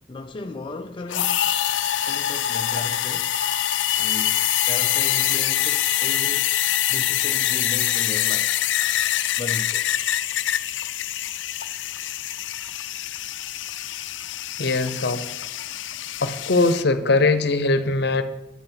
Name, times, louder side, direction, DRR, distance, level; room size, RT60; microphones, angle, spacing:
voice 1, 0.0-1.5 1.9-3.3 4.0-6.5 6.9-8.5 9.4-9.9, left 2 dB, 30° left, 0.4 m, -36 dB
sound 1, 1.1-16.8, left 12 dB, 90° left, 0.5 m, -25 dB
voice 2, 14.6-15.3 16.2-18.2, left 3 dB, 65° left, 0.8 m, -21 dB
9.6 x 8.1 x 5.9 m
head